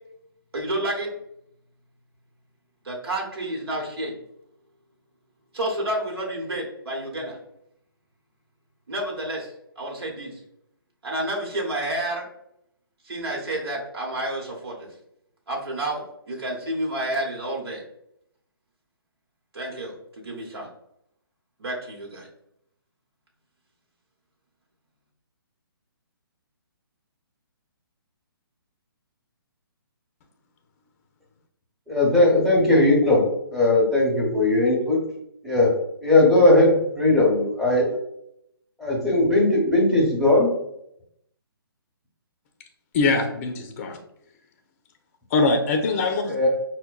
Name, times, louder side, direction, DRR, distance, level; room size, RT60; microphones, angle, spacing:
voice 1, 0.5-1.1 2.8-4.2 5.5-7.4 8.9-10.4 11.0-12.3 13.0-14.9 15.5-17.8 19.5-20.7 21.6-22.3, right 1 dB, 80° right, -2 dB, 1.1 m, -30 dB
voice 2, 31.9-33.2 33.5-35.0 35.4-35.7 36.0-37.9 38.8-40.5 46.3-46.5, left 2 dB, ahead, -7 dB, 0.9 m, -18 dB
voice 3, 42.9-44.0 45.3-46.3, left 3 dB, 35° left, 4 dB, 0.5 m, -22 dB
5.7 x 2.2 x 2.3 m, 0.77 s
hypercardioid pair, 140°, 13 cm